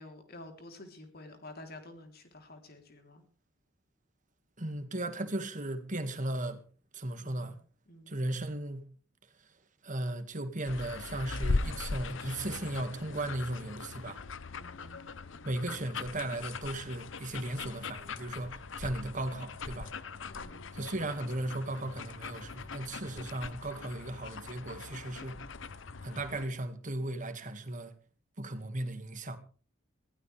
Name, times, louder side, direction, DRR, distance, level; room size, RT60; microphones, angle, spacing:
voice 1, 0.0-3.2 7.2-7.6 7.9-8.2 14.5-15.1 20.2-20.6, left 1 dB, 50° left, 3.5 m, -50 dB
voice 2, 4.6-6.6 6.9-7.6 8.1-8.8 9.8-14.2 15.4-19.9 20.7-25.4 26.0-27.9 28.4-29.4, right 1 dB, 40° right, 1.9 m, -36 dB
sound 1, 10.7-26.5, left 3 dB, 70° left, 0.8 m, -40 dB
21.5 x 15.5 x 3.4 m
head